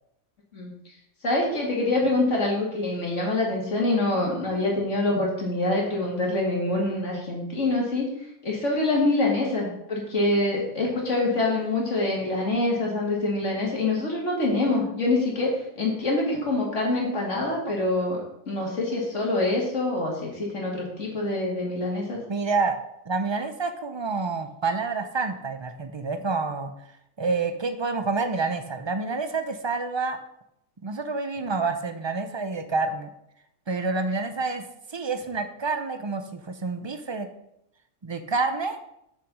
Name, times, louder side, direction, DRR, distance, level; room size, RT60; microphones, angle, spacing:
voice 1, 1.2-8.1 8.4-22.2, left 2 dB, 55° left, -2 dB, 2.6 m, -25 dB
voice 2, 22.3-22.8 23.1-26.7 27.2-30.2 30.8-33.1 33.7-34.6 34.9-37.3 38.0-38.8, right 4 dB, 40° right, 8 dB, 0.4 m, -28 dB
6.8 x 6.3 x 6.1 m, 0.78 s
omnidirectional pair, 1.5 m